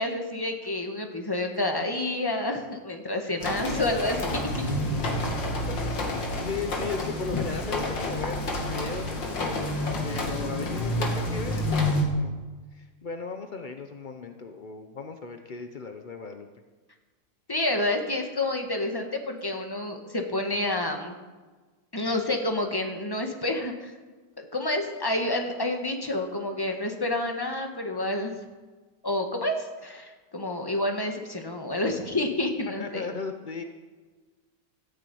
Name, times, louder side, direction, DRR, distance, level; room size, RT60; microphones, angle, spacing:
voice 1, 0.0-4.5 7.3-7.4 17.5-21.1 21.9-23.9 24.5-28.3 29.0-33.0, left 1 dB, 15° left, 3 dB, 1.4 m, -29 dB
sound 1, 3.4-12.0, left 1 dB, 70° left, 2.9 m, -29 dB
voice 2, 6.1-9.7 10.0-12.3 12.7-16.5 32.8-33.6, left 4 dB, 55° left, 6 dB, 0.5 m, -37 dB
14.0 x 9.4 x 8.6 m, 1.3 s
omnidirectional pair, 2.1 m